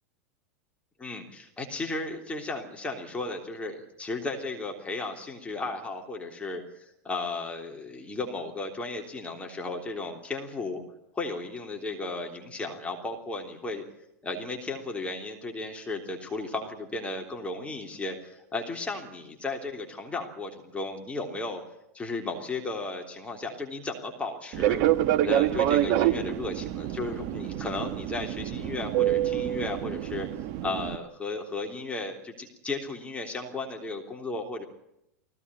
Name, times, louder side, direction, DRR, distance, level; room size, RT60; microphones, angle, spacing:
voice 1, 1.0-10.8 11.1-13.8 14.2-21.6 21.9-24.8 25.2-30.3 30.6-34.6, left 3 dB, 15° left, 2 dB, 3.4 m, -35 dB
Fixed-wing aircraft airplane, 24.5-31.0, right 12 dB, 50° right, 1.4 m, -27 dB
19.5 x 16.0 x 10.0 m, 0.81 s
hypercardioid pair, 95°, 8 cm